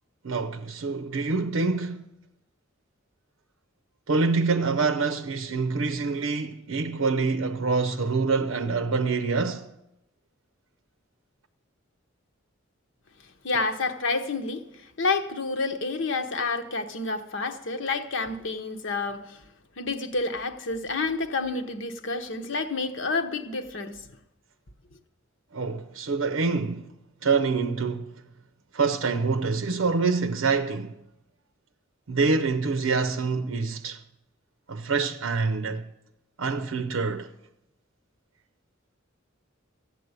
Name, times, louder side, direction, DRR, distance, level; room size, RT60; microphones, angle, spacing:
voice 1, 0.2-2.0 4.1-9.7 25.5-26.9 27.2-28.1 28.7-30.9 32.1-34.0 34.7-35.9 36.4-37.3, right 4 dB, 80° right, 0.7 m, -26 dB
voice 2, 13.4-14.6 15.0-19.4 19.8-24.0, left 3 dB, 65° left, 1.1 m, -29 dB
14.5 x 8.4 x 8.1 m
head